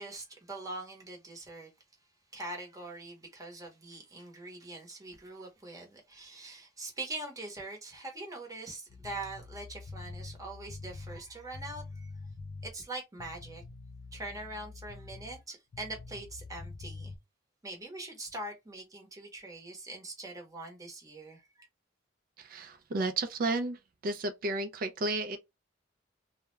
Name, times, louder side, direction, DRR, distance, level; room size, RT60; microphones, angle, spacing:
voice 1, 0.0-1.7 2.3-12.1 12.6-13.6 14.1-17.1 17.6-21.7, right 2 dB, 20° right, 0.9 m, -43 dB
sound 1, 8.9-12.8 13.2-15.4 15.7-17.2, left 3 dB, 55° left, 0.4 m, -46 dB
voice 2, 22.4-25.4, right 2 dB, 50° right, 0.4 m, -33 dB
2.3 x 2.1 x 3.1 m
head